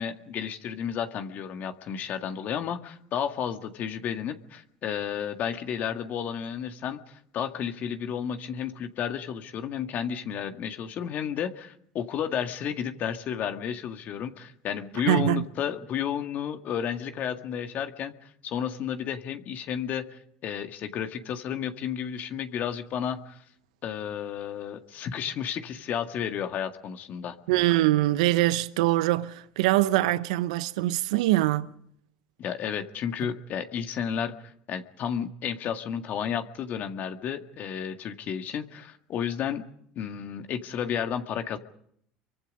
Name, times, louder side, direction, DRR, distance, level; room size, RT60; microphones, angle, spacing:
voice 1, 0.0-23.4 23.8-27.4 32.4-39.6 40.0-41.6, left 8 dB, 50° left, 1.9 m, -32 dB
voice 2, 15.1-15.4 27.5-31.7, right 16 dB, 75° right, 0.8 m, -23 dB
28.0 x 24.0 x 5.4 m
hypercardioid pair, 75°, 4 cm